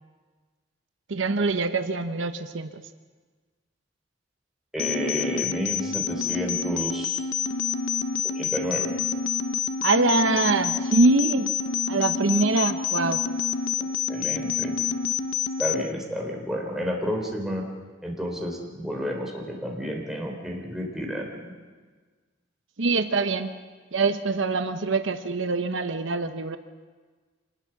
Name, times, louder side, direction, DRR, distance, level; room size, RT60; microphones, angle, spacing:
voice 1, 1.1-2.8 9.8-11.6 11.9-13.2 22.8-23.5 23.9-26.6, right 3 dB, 80° right, 9 dB, 0.9 m, -24 dB
voice 2, 4.7-7.2 8.4-8.9 13.8-14.8 15.6-17.6 18.0-21.5, equal, ahead, -1 dB, 3.7 m, -31 dB
sound 1, 4.8-15.8, left 6 dB, 80° left, 0.8 m, -28 dB
26.0 x 20.0 x 5.9 m, 1.4 s
head